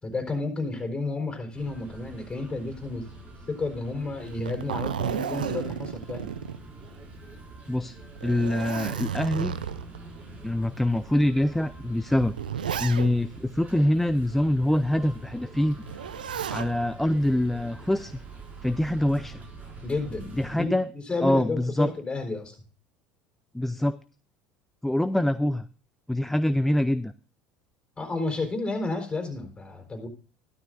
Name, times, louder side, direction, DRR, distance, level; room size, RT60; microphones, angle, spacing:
voice 1, 0.0-3.1 3.5-6.3 19.8-22.6 28.0-30.1, left 3 dB, 20° left, 4 dB, 4.2 m, -31 dB
sound 1, 1.5-20.6, right 2 dB, 35° right, 5.4 m, -45 dB
Zipper (clothing), 4.2-7.1 7.5-7.6 8.1-10.0 10.7-10.9 11.8-13.4 15.8-16.7 18.1-18.6, right 8 dB, 90° right, 0.5 m, -33 dB
voice 2, 8.2-9.6 10.4-12.3 12.8-15.8 16.5-18.1 18.6-19.4 20.3-20.9 21.2-21.9 23.5-24.0 24.8-25.7 26.1-27.1, left 1 dB, 5° left, 13 dB, 0.4 m, -24 dB
13.5 x 12.5 x 2.6 m, 0.36 s
hypercardioid pair, 75°, 5 cm